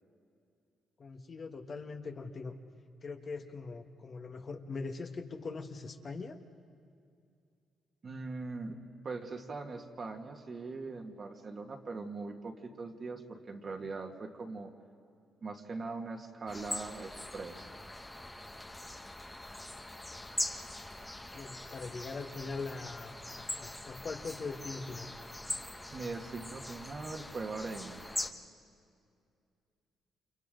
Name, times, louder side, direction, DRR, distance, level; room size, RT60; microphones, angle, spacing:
voice 1, 1.0-2.5 3.0-6.3 21.3-25.1, left 4 dB, 45° left, 5 dB, 1.5 m, -41 dB
voice 2, 8.0-14.7 15.4-17.7 25.9-28.0, right 3 dB, 40° right, 3 dB, 2.0 m, -41 dB
sound 1, 16.5-28.3, left 1 dB, 10° left, 1.2 m, -42 dB
30.0 x 27.0 x 3.9 m, 2.4 s
cardioid pair, 90°, 0 cm